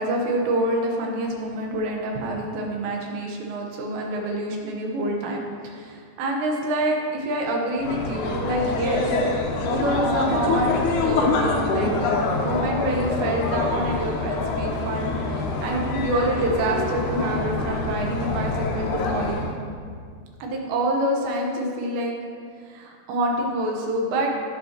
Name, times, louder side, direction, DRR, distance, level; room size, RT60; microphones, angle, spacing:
voice 1, 0.0-19.5 20.4-22.1 22.6-24.3, right 1 dB, 80° right, 0 dB, 3.4 m, -27 dB
sound 1, 7.8-19.6, left 3 dB, 85° left, 1.7 m, -25 dB
17.0 x 6.2 x 3.0 m, 2.1 s
omnidirectional pair, 5.0 m